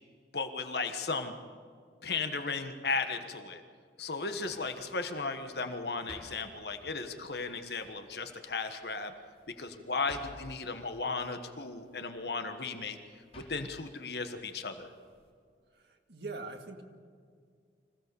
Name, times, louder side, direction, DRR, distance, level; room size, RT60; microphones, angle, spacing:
voice 1, 0.3-1.3 2.0-3.6 4.0-9.1 9.5-13.0 13.3-14.9, left 4 dB, 60° left, 7 dB, 1.4 m, -35 dB
sound 1, 4.1-15.3, left 1 dB, 35° left, 4.1 m, -56 dB
voice 2, 15.7-16.8, right 3 dB, 65° right, 4 dB, 2.1 m, -43 dB
25.5 x 16.5 x 7.0 m, 2.1 s
head